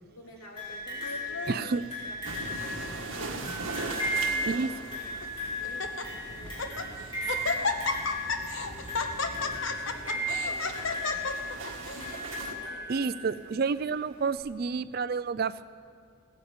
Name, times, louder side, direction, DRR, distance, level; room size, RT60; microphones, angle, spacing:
voice 1, 0.1-3.3 4.0-5.1 5.5-8.0 8.6-11.2 11.7-13.5, left 1 dB, 80° left, 0 dB, 2.8 m, -51 dB
sound 1, 0.6-13.4 14.4-14.5, equal, 25° left, 4.7 m, -36 dB
Laughter, 1.0-1.8 2.5-2.9 3.2-3.3 4.0-4.7 5.2-5.3 5.6-6.0 6.5-6.9 7.3-12.1, left 4 dB, 65° left, 0.9 m, -33 dB
voice 2, 1.5-1.8 4.5-4.7 12.9-15.6, right 5 dB, 45° right, 14 dB, 0.4 m, -29 dB
sound 2, 2.2-12.5, right 3 dB, 65° right, 1.7 m, -41 dB
17.0 x 10.0 x 8.0 m, 2.2 s
head